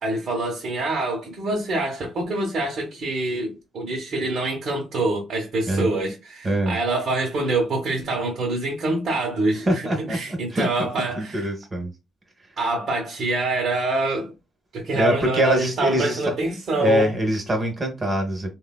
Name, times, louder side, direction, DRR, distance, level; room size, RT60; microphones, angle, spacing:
voice 1, 0.0-11.5 12.6-14.3 14.7-17.1, right 2 dB, 55° right, 0.9 m, -25 dB
voice 2, 6.4-6.8 9.7-10.9 11.2-11.9 14.9-16.2 16.8-18.5, equal, 30° right, 0.9 m, -24 dB
3.2 x 2.2 x 2.2 m
cardioid pair, 90°, 0 cm